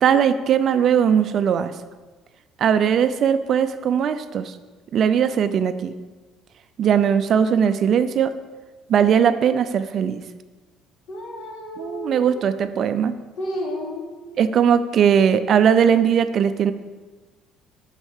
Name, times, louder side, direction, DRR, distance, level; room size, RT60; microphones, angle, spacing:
voice 1, 0.0-1.7 2.6-4.5 4.9-5.9 6.8-8.3 8.9-10.2 11.8-13.1 14.4-16.7, right 8 dB, 40° right, 11 dB, 0.5 m, -19 dB
voice 2, 11.1-12.3 13.4-14.1, left 1 dB, 65° left, -2 dB, 2.8 m, -31 dB
8.0 x 6.4 x 7.3 m, 1.3 s
cardioid pair, 160°, 0 cm